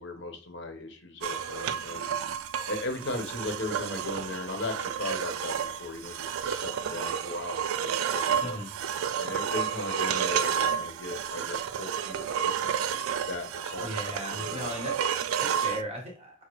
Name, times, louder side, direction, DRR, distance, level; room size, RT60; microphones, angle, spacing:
voice 1, 0.0-2.1 2.7-8.6 9.2-12.7 13.0-14.7, left 2 dB, 60° left, 5 dB, 0.9 m, -37 dB
sound 1, 1.2-15.8, right 8 dB, 85° right, 0.4 m, -31 dB
voice 2, 13.8-16.4, equal, 30° right, 0 dB, 1.4 m, -37 dB
6.0 x 2.0 x 3.1 m, 0.41 s
head